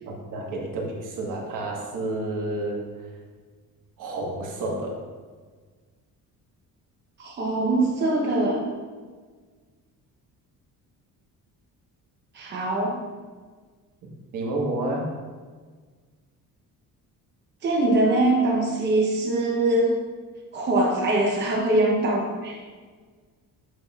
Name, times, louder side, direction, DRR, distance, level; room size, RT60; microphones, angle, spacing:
voice 1, 0.0-2.8 4.0-5.0 14.3-15.1, right 2 dB, 60° right, -1 dB, 1.3 m, -30 dB
voice 2, 7.2-8.7 12.3-13.0 17.6-20.0 20.5-22.6, right 2 dB, 30° right, -2 dB, 0.8 m, -22 dB
8.0 x 5.9 x 2.4 m, 1.5 s
cardioid pair, 155°, 34 cm